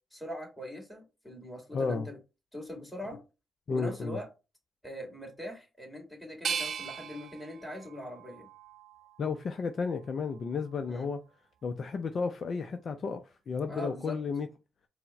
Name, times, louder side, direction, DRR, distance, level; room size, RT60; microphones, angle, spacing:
voice 1, 0.1-2.2 2.5-3.2 3.7-4.3 4.8-8.5 10.9-11.1 13.7-14.2, left 1 dB, 5° left, 2.3 m, -41 dB
voice 2, 1.7-2.1 3.7-4.2 9.2-11.2 11.6-14.5, left 5 dB, 55° left, 0.5 m, -33 dB
sound 1, 6.4-9.4 9.9-10.7, right 6 dB, 60° right, 0.4 m, -39 dB
4.4 x 2.1 x 4.2 m
supercardioid pair, 60°, 0 cm